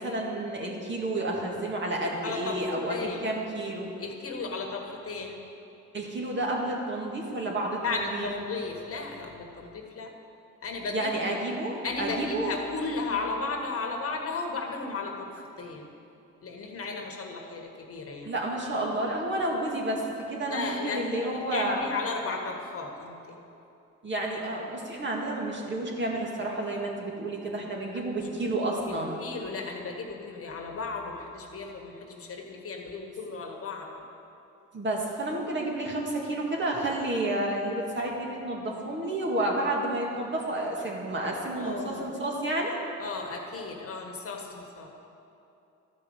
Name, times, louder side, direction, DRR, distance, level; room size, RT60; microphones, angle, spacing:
voice 1, 0.0-3.9 5.9-8.3 10.9-12.5 18.3-21.8 24.0-29.2 34.7-42.8, right 1 dB, 40° right, -1 dB, 2.0 m, -30 dB
voice 2, 2.2-3.2 4.0-5.4 7.8-10.1 10.6-11.1 11.8-15.9 16.4-18.3 20.5-23.4 27.9-28.0 28.4-28.5 28.9-34.0 41.5-42.1 43.0-44.9, left 3 dB, 50° left, 2 dB, 1.5 m, -35 dB
12.0 x 5.4 x 7.9 m, 2.8 s
cardioid pair, 90°, 30 cm